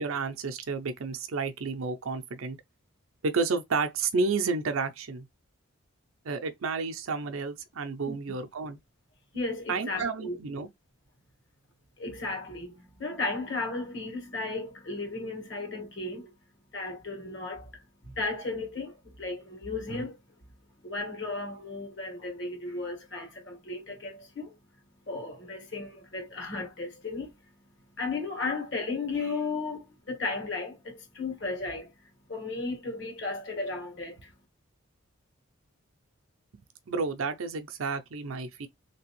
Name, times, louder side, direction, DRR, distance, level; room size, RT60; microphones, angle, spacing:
voice 1, 0.0-2.6 3.2-5.3 6.2-8.8 9.7-10.7 36.9-38.7, right 4 dB, 80° right, 0.6 m, -31 dB
voice 2, 9.3-10.4 12.0-16.3 16.7-20.2 20.8-24.6 25.0-27.5 27.9-32.0 32.3-34.3, left 3 dB, 60° left, 1.5 m, -35 dB
3.3 x 2.9 x 3.0 m
head